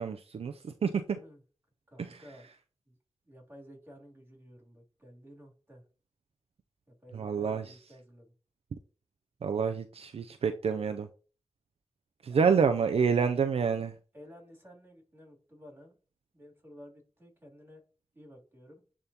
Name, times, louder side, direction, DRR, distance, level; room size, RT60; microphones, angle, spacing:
voice 1, 0.0-1.2 2.0-2.2 7.1-7.7 9.4-11.1 12.2-14.0, right 6 dB, 65° right, 7 dB, 0.4 m, -28 dB
voice 2, 1.9-2.5 2.9-3.0 3.2-5.8 6.9-8.3 12.3-12.7 14.1-16.0 16.3-17.8 18.1-18.8, equal, 20° right, -2 dB, 2.8 m, -53 dB
10.5 x 3.6 x 2.8 m, 0.37 s
cardioid pair, 65°, 11 cm